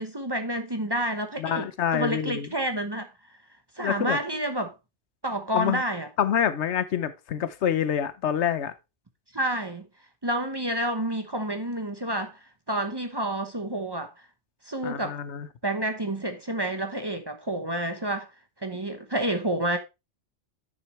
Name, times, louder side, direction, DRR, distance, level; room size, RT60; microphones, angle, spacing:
voice 1, 0.0-3.1 3.8-4.7 5.2-6.1 9.3-9.9 10.2-14.1 14.6-15.2 15.6-18.3 18.6-19.8, right 1 dB, 25° right, 0.9 m, -29 dB
voice 2, 1.4-2.5 3.8-4.2 5.5-5.8 6.2-8.7 14.8-15.5, left 9 dB, 80° left, 1.1 m, -27 dB
9.8 x 6.2 x 3.1 m
omnidirectional pair, 1.2 m